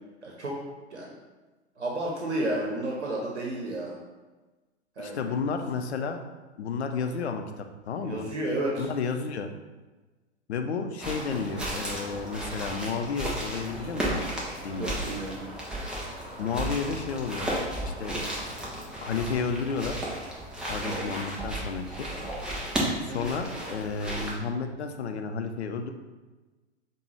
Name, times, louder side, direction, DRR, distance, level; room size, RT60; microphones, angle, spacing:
voice 1, 0.2-0.6 0.9-1.1 1.8-3.9 5.0-5.3 8.0-8.9 14.8-15.4 20.8-21.0 22.9-23.2, right 1 dB, 80° right, -2 dB, 0.8 m, -32 dB
voice 2, 5.0-6.2 6.6-8.3 8.8-9.5 10.5-14.2 14.6-15.0 16.4-17.5 17.8-18.2 19.0-20.0 20.7-22.1 23.0-25.9, left 5 dB, 70° left, 6 dB, 0.6 m, -32 dB
sound 1, 11.0-24.3, right 1 dB, 5° right, 0.4 m, -34 dB
5.1 x 2.2 x 3.1 m, 1.2 s
figure-of-eight pair, 100°, 34 cm